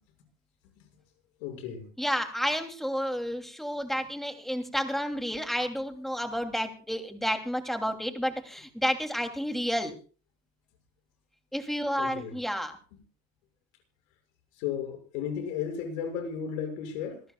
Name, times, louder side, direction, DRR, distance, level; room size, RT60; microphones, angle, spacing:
voice 1, 1.4-1.9 12.0-12.4 14.5-17.2, left 7 dB, 80° left, 5 dB, 6.7 m, -34 dB
voice 2, 2.0-9.9 11.5-12.8, equal, ahead, 5 dB, 3.0 m, -31 dB
26.5 x 14.0 x 2.4 m, 0.38 s
supercardioid pair, 100°, 39 cm